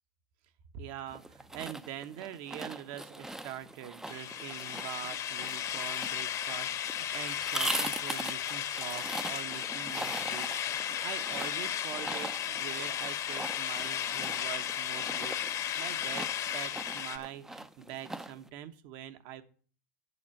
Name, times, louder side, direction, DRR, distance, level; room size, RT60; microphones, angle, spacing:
voice 1, 0.7-19.4, right 11 dB, 55° right, 9 dB, 1.2 m, -44 dB
sound 1, 1.1-18.5, right 1 dB, 5° right, 0.5 m, -41 dB
sound 2, 4.1-17.2, left 10 dB, 35° left, 1.0 m, -35 dB
8.4 x 7.3 x 7.2 m, 0.42 s
supercardioid pair, 125°, 9 cm